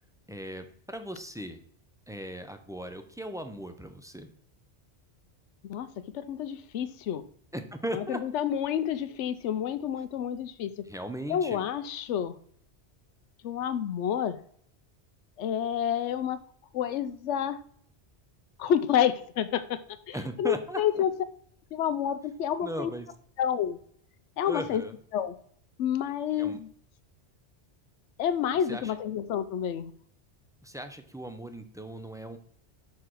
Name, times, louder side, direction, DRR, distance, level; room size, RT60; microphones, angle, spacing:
voice 1, 0.3-1.6 2.1-4.3 7.5-8.2 10.8-11.7 20.1-21.0 22.6-23.1 24.4-24.9 26.4-26.6 28.7-28.9 30.6-32.4, right 1 dB, 5° right, 7 dB, 0.6 m, -38 dB
voice 2, 6.1-7.3 7.9-10.8 11.3-12.3 13.4-14.4 15.4-16.4 16.7-17.6 18.6-19.8 20.1-21.1 21.7-22.9 23.4-23.8 24.4-24.8 25.1-25.3 25.8-26.7 28.2-29.9, left 9 dB, 85° left, 13 dB, 0.9 m, -29 dB
5.8 x 4.8 x 6.4 m, 0.62 s
omnidirectional pair, 1.2 m